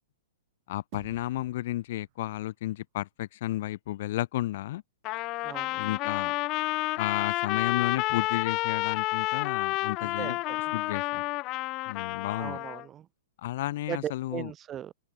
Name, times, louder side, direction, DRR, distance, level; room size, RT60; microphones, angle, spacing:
voice 1, 0.7-4.8 5.8-6.3 6.9-10.4 10.7-11.2 11.9-12.6 13.4-14.5, left 15 dB, 55° left, 1.5 m, -32 dB
sound 1, 0.9-3.5, right 29 dB, 45° right, 5.3 m, -53 dB
Trumpet, 5.0-12.9, left 20 dB, 35° left, 0.6 m, -30 dB
voice 2, 5.4-5.8 10.0-10.6 12.4-13.1 13.9-14.9, right 10 dB, 25° right, 0.6 m, -38 dB
open air
hypercardioid pair, 135°, 0 cm